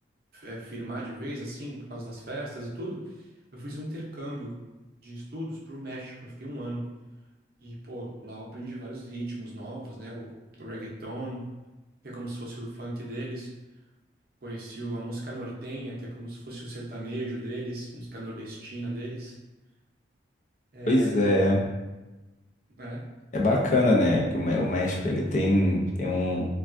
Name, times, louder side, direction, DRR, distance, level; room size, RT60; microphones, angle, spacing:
voice 1, 0.3-4.6 5.0-6.9 7.6-11.5 12.0-13.5 14.4-19.4 20.7-21.4 22.8-23.1, right 1 dB, 50° right, -4 dB, 0.6 m, -37 dB
voice 2, 20.9-21.7 23.3-26.5, left 1 dB, 40° left, -2 dB, 0.4 m, -23 dB
3.3 x 2.2 x 2.5 m, 1.1 s
head